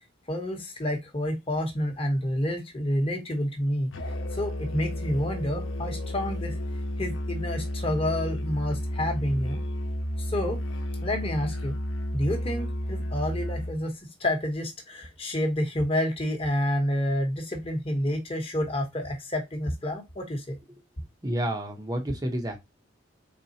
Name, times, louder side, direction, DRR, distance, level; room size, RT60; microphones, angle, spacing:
voice 1, 0.3-3.9 4.3-6.6 7.0-9.6 10.2-10.6 11.0-11.7 12.1-13.9 14.2-20.6, left 1 dB, 30° left, 1.0 m, -29 dB
Musical instrument, 3.9-13.8, left 1 dB, 80° left, 0.9 m, -32 dB
voice 2, 21.2-22.6, right 1 dB, 20° right, 0.7 m, -29 dB
4.2 x 3.5 x 2.8 m
head